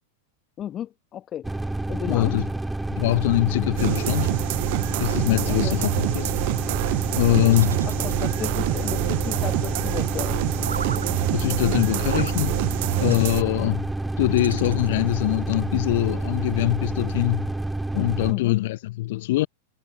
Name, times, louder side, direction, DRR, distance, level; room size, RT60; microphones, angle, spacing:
voice 1, 0.6-1.5 1.9-2.4 5.5-5.8 7.8-10.7 18.3-18.6, left 10 dB, 30° left, 1.0 m, -34 dB
sound 1, 1.4-18.3, right 2 dB, 5° right, 1.1 m, -29 dB
voice 2, 2.1-2.5 2.9-4.4 5.0-6.3 7.1-7.8 11.3-12.6 13.0-13.9 14.2-17.5 17.9-19.5, left 17 dB, 55° left, 1.0 m, -23 dB
sound 2, 3.8-13.4, right 22 dB, 50° right, 0.4 m, -26 dB
sound 3, 7.5-8.7 10.6-11.1 12.1-12.4 13.1-13.3 14.4-15.2, right 6 dB, 70° right, 1.5 m, -36 dB
figure-of-eight pair, 90°, 0 cm